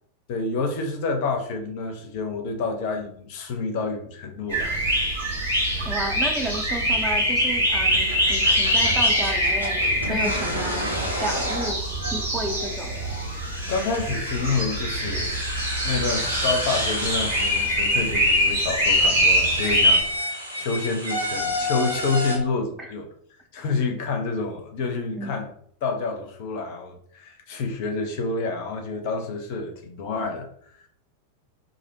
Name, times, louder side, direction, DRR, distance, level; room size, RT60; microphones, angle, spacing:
voice 1, 0.3-5.1 13.7-15.3 15.8-23.1 23.5-25.5 25.8-30.9, left 4 dB, 50° left, 4 dB, 0.5 m, -28 dB
sound 1, 4.5-20.0, equal, 65° right, 1.1 m, -23 dB
voice 2, 5.8-9.8 10.1-10.9 11.2-11.8 12.1-13.0 22.8-22.9 25.2-25.4, right 1 dB, 10° right, 1 dB, 0.5 m, -32 dB
sound 2, 7.8-22.3, equal, 85° right, 0.6 m, -32 dB
2.5 x 2.0 x 2.7 m, 0.62 s
figure-of-eight pair, 90°, 0 cm